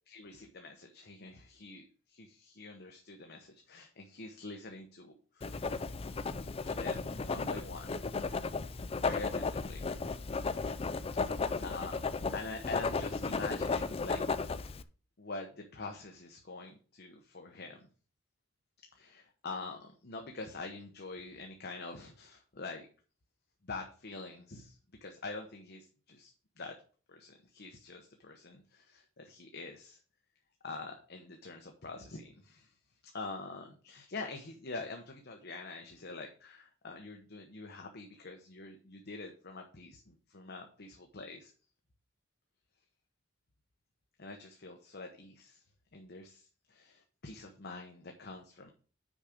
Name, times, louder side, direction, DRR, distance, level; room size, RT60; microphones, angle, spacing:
voice 1, 0.1-5.5 6.6-8.1 8.9-9.9 11.3-12.0 12.3-14.3 14.6-14.7 15.2-17.9 18.9-22.9 23.6-26.7 27.1-30.0 30.6-32.7 33.0-41.5 44.2-45.6 45.9-48.7, left 3 dB, 50° left, 3 dB, 0.9 m, -45 dB
Writing, 5.4-14.8, left 4 dB, 30° left, 0.4 m, -35 dB
6.3 x 5.0 x 6.5 m, 0.40 s
head